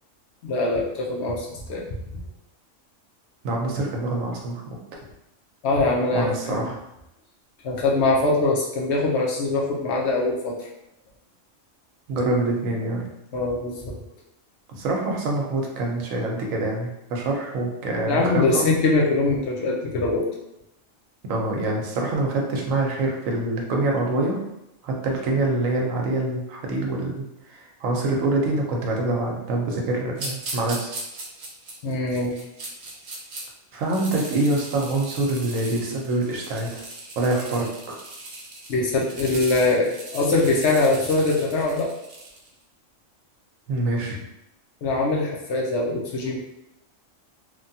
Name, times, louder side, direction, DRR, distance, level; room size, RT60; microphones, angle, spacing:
voice 1, 0.4-1.9 5.6-6.7 7.6-10.7 13.3-13.9 18.1-20.3 31.8-32.3 38.7-41.9 44.8-46.4, left 2 dB, 65° left, -2 dB, 0.8 m, -23 dB
voice 2, 3.4-4.8 6.1-6.8 12.1-13.0 14.7-18.7 21.3-24.4 24.8-30.9 33.7-36.8 37.2-38.0 43.7-44.2, right 2 dB, 90° right, 0 dB, 1.1 m, -25 dB
sound 1, 30.2-33.4 33.8-42.5, right 2 dB, 60° right, 0.9 m, -38 dB
3.1 x 2.2 x 2.7 m, 0.87 s
omnidirectional pair, 1.3 m